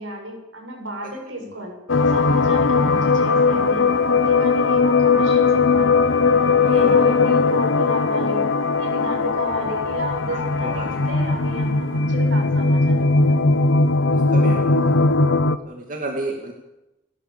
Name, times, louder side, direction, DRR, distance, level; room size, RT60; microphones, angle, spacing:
voice 1, 0.0-1.7 2.1-6.1 6.7-8.5 8.8-13.4, right 1 dB, 80° right, 2 dB, 7.4 m, -32 dB
voice 2, 1.0-1.5 6.6-7.0 10.3-11.0 14.1-15.0 15.7-16.5, right 2 dB, 40° right, 0 dB, 2.6 m, -33 dB
sound 1, 1.9-15.6, left 4 dB, 75° left, 1.0 m, -18 dB
29.5 x 12.5 x 7.0 m, 0.92 s
head